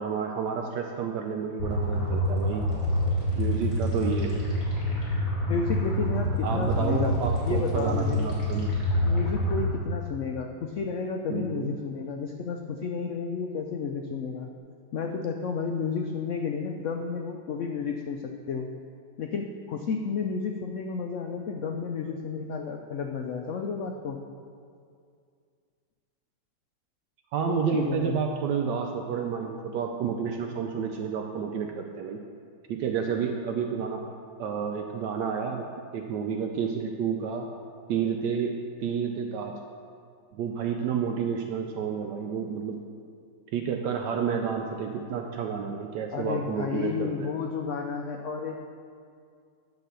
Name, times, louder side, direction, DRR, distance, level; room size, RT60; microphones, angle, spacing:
voice 1, 0.0-2.7 3.4-4.4 6.4-8.7 11.3-11.7 27.3-32.2 32.7-34.0 34.4-35.7 35.9-37.5 37.9-39.5 40.3-42.8 43.5-47.3, right 6 dB, 75° right, 3 dB, 1.2 m, -30 dB
sound 1, 1.6-9.6, left 1 dB, 50° left, 2.7 m, -27 dB
voice 2, 5.5-8.3 9.0-14.5 14.9-18.7 19.2-24.2 27.4-28.2 46.1-48.6, left 5 dB, 90° left, 3 dB, 0.6 m, -32 dB
10.5 x 4.1 x 6.7 m, 2.3 s
omnidirectional pair, 1.9 m